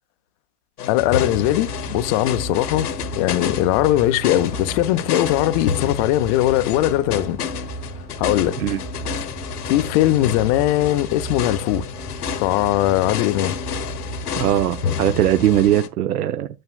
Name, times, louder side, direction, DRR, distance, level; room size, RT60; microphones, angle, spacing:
sound 1, 0.8-15.9, left 8 dB, 85° left, 0.9 m, -30 dB
voice 1, 0.9-7.4 8.2-8.6 9.7-11.9 12.4-13.6, left 15 dB, 25° left, 0.3 m, -20 dB
sound 2, 1.0-15.8, right 3 dB, 20° right, 1.4 m, -35 dB
voice 2, 14.4-16.5, right 12 dB, 80° right, 0.6 m, -19 dB
9.5 x 7.7 x 2.3 m
hypercardioid pair, 105°, 45 cm